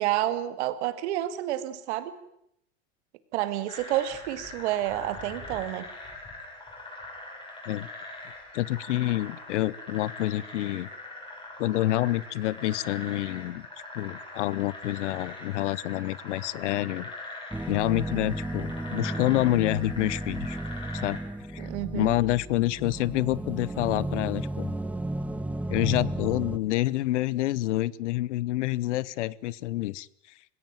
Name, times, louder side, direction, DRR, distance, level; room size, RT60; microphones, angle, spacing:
voice 1, 0.0-2.1 3.3-5.9 21.6-22.1, right 14 dB, 75° right, 11 dB, 2.2 m, -29 dB
sound 1, 3.7-21.2, left 2 dB, 15° left, 7.0 m, -42 dB
voice 2, 8.5-10.9 11.6-13.7 13.9-17.1 17.7-20.6 20.9-21.2 21.5-24.7 25.7-30.1, left 16 dB, 85° left, 22 dB, 0.9 m, -28 dB
sound 2, 17.5-26.6, right 1 dB, 5° right, 0.8 m, -34 dB
20.0 x 17.0 x 9.0 m, 0.77 s
supercardioid pair, 125°, 35 cm